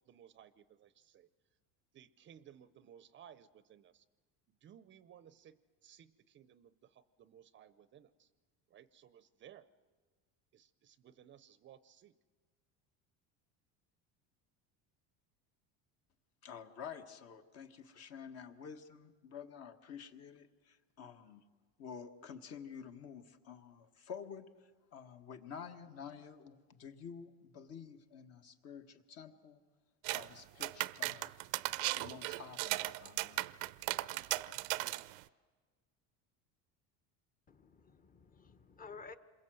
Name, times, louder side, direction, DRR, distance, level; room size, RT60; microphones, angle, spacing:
voice 1, 0.1-1.3 1.9-4.0 4.6-8.3 8.7-9.7 10.5-12.1, right 9 dB, 35° right, 15 dB, 0.6 m, -59 dB
voice 2, 16.4-21.4 21.8-29.6 30.1-31.3 31.9-33.5, left 7 dB, 45° left, 7 dB, 1.6 m, -50 dB
sound 1, 30.0-30.3 30.6-35.2, right 20 dB, 85° right, 0.7 m, -37 dB
voice 3, 37.5-39.2, left 4 dB, 25° left, 9 dB, 1.2 m, -53 dB
27.0 x 22.0 x 7.8 m, 1.4 s
cardioid pair, 140°, 34 cm